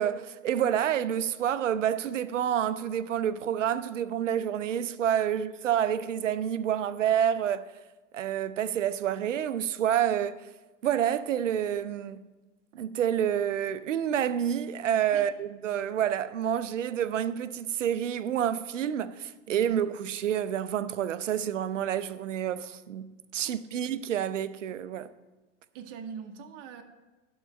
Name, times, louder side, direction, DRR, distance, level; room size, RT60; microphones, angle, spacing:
voice 1, 0.0-7.7 8.1-10.4 10.8-12.2 12.7-25.1, right 9 dB, 85° right, 0.6 m, -28 dB
voice 2, 19.5-19.8 23.4-23.8 25.7-26.8, right 6 dB, 45° right, 1.0 m, -43 dB
11.5 x 4.0 x 7.1 m
hypercardioid pair, 100°, 36 cm